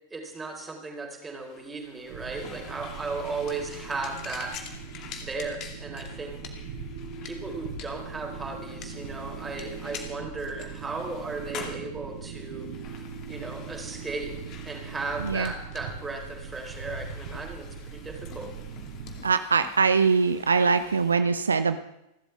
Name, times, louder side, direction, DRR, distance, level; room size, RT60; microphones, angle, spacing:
voice 1, 0.1-4.5 5.2-6.4 7.2-18.5, right 3 dB, 15° right, 1 dB, 4.0 m, -36 dB
sound 1, 1.4-21.1, left 7 dB, 35° left, 2.4 m, -47 dB
sound 2, 2.1-19.2, right 5 dB, 50° right, 4.1 m, -40 dB
voice 2, 15.2-15.5 19.2-21.8, right 5 dB, 75° right, 11 dB, 0.7 m, -22 dB
30.0 x 12.5 x 3.5 m, 0.87 s
figure-of-eight pair, 90°, 0 cm